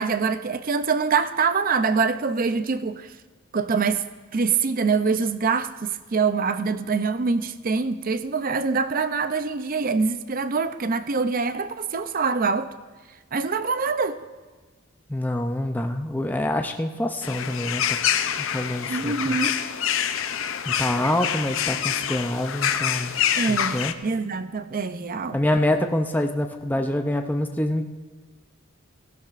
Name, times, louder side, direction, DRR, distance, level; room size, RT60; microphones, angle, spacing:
voice 1, 0.0-3.1 3.5-4.0 4.3-12.7 13.3-14.2 18.9-19.6 23.4-25.4, right 5 dB, 40° right, 11 dB, 0.5 m, -24 dB
voice 2, 15.1-18.0 18.4-19.4 20.7-23.2 23.5-23.9 25.3-27.9, left 1 dB, 10° left, 4 dB, 0.5 m, -26 dB
sound 1, 17.2-23.9, left 9 dB, 65° left, 0.5 m, -26 dB
17.0 x 15.0 x 2.5 m, 1.4 s
head